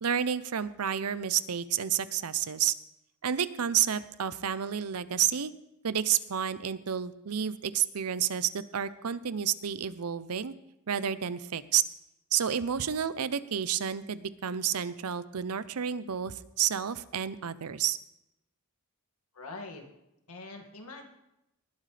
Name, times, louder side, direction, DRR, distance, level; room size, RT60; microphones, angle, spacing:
voice 1, 0.0-2.7 3.2-5.5 5.8-10.5 10.9-11.8 12.3-18.0, right 9 dB, 80° right, 15 dB, 0.7 m, -30 dB
voice 2, 19.3-19.9 20.3-21.0, left 3 dB, 85° left, 3 dB, 2.2 m, -43 dB
19.5 x 11.5 x 3.4 m, 0.87 s
head